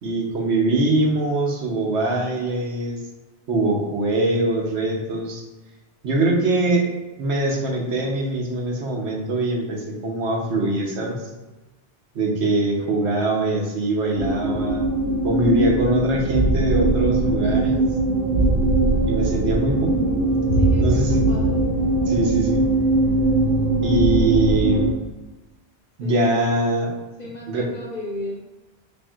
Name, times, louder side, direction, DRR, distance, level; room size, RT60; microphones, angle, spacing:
voice 1, 0.0-3.0 3.5-5.4 6.0-6.9 7.2-11.3 12.1-14.8 15.2-17.8 19.1-20.1 20.8-21.2 22.1-22.6 23.8-24.9 26.0-26.9 27.5-27.7, right 2 dB, 75° right, -1 dB, 1.1 m, -22 dB
sound 1, 14.1-24.9, right 2 dB, 55° right, 1.1 m, -20 dB
voice 2, 17.4-17.8 20.6-21.6 26.0-26.4 27.2-28.4, left 1 dB, 45° left, -4 dB, 0.9 m, -35 dB
4.3 x 3.5 x 2.4 m, 1.1 s
omnidirectional pair, 1.2 m